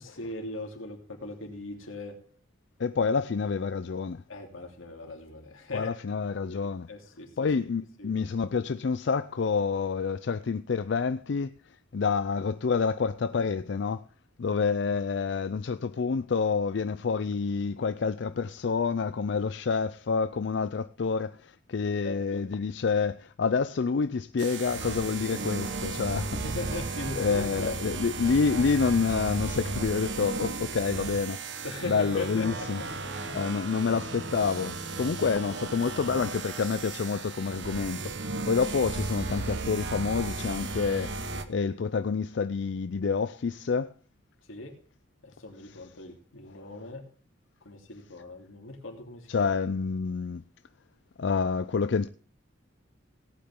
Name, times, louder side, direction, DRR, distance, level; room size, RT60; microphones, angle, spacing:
voice 1, 0.0-2.1 4.3-5.9 6.5-6.6 6.9-7.3 8.0-8.1 22.0-22.4 26.4-27.8 31.6-32.7 33.2-33.4 44.5-44.7 45.2-47.0 47.6-49.5, left 2 dB, 90° left, 3.1 m, -39 dB
voice 2, 2.8-4.2 5.7-6.9 7.4-11.6 11.9-14.0 14.4-26.4 27.2-31.4 31.9-32.8 33.3-43.9 45.6-45.8 49.3-50.4 51.2-52.1, left 5 dB, 60° left, 0.4 m, -28 dB
sound 1, 24.4-41.4, right 3 dB, 60° right, 1.2 m, -35 dB
18.0 x 8.7 x 3.7 m
head